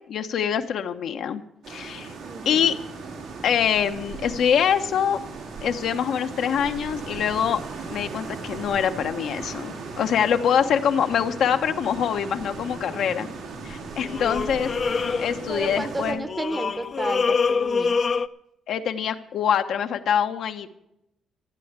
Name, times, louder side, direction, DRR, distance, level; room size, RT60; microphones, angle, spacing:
voice 1, 0.0-1.4 1.7-2.1 2.4-2.7 3.4-5.2 5.6-7.6 7.9-13.3 13.6-16.2 18.7-20.7, left 8 dB, 70° left, 6 dB, 0.9 m, -24 dB
sound 1, 1.6-16.1, right 4 dB, 80° right, 3.3 m, -37 dB
voice 2, 2.2-2.8 12.8-13.0 15.5-18.0, right 2 dB, 20° right, 12 dB, 1.0 m, -32 dB
sound 2, 11.2-11.4 14.0-15.9 16.3-18.3, left 5 dB, 45° left, 0.6 m, -26 dB
14.0 x 8.5 x 8.1 m, 0.83 s
cardioid pair, 90°, 0 cm